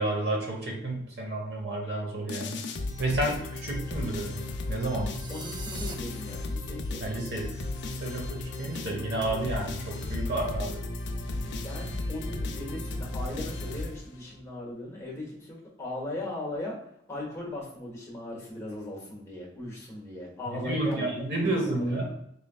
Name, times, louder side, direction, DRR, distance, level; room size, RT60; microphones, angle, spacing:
voice 1, 0.0-2.6 3.0-5.1 7.0-7.5 7.9-10.8 20.5-22.1, right 2 dB, 60° right, 1 dB, 0.9 m, -31 dB
sound 1, 2.3-14.4, left 2 dB, 70° left, 0.5 m, -35 dB
sound 2, 5.1-5.9, right 4 dB, 25° right, 0.3 m, -42 dB
voice 2, 5.3-7.0 11.3-16.8 17.1-22.1, left 1 dB, 15° left, -4 dB, 1.2 m, -38 dB
4.2 x 3.3 x 2.3 m, 0.74 s
head